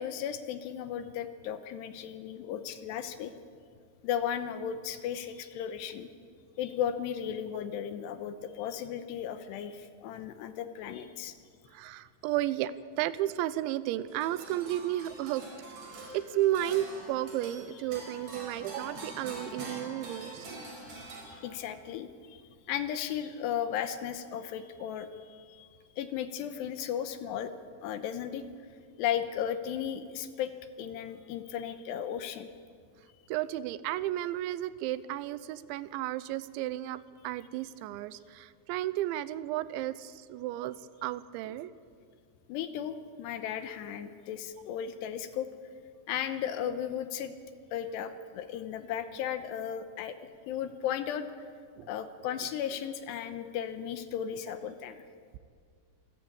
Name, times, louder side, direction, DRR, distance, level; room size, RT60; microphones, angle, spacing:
voice 1, 0.0-3.3 4.0-6.1 6.6-11.3 21.0-22.4 22.7-25.7 26.0-27.5 27.8-28.4 29.0-30.5 30.8-32.5 42.5-45.5 46.1-47.3 47.7-50.2 50.5-51.3 51.9-55.0, left 9 dB, 80° left, 9 dB, 2.8 m, -35 dB
voice 2, 11.7-15.4 16.1-20.7 33.3-41.7 51.8-51.9, right 13 dB, 85° right, 15 dB, 3.0 m, -33 dB
sound 1, 14.1-21.8, right 2 dB, 60° right, 6.4 m, -45 dB
27.5 x 13.0 x 8.6 m, 2.1 s
omnidirectional pair, 5.3 m